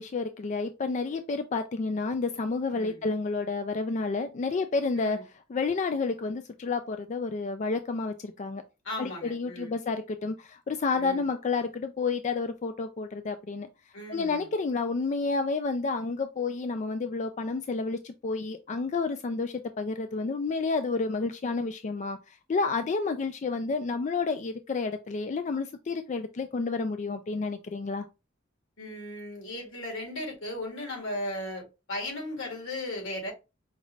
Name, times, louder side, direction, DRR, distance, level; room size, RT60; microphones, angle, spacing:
voice 1, 0.0-5.2 5.5-8.6 9.0-13.7 14.1-28.0, left 4 dB, 40° left, 0.3 m, -30 dB
voice 2, 8.8-9.8 10.9-11.3 13.9-14.5 28.8-33.3, left 1 dB, 85° left, 1.9 m, -36 dB
5.2 x 2.5 x 3.1 m
head